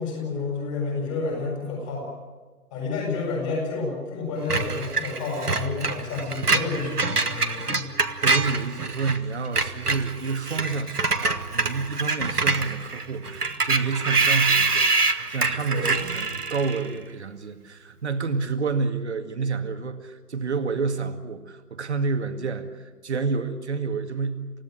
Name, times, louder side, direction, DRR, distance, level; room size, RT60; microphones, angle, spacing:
voice 1, 0.0-2.1 2.7-7.9 15.7-15.9, left 3 dB, 20° left, 0 dB, 7.5 m, -30 dB
Screech, 4.5-9.2 9.4-16.9, right 3 dB, 75° right, 1.8 m, -25 dB
voice 2, 8.2-24.5, right 4 dB, 45° right, 7 dB, 2.2 m, -29 dB
28.5 x 16.5 x 9.3 m, 1.4 s
figure-of-eight pair, 145°, 47 cm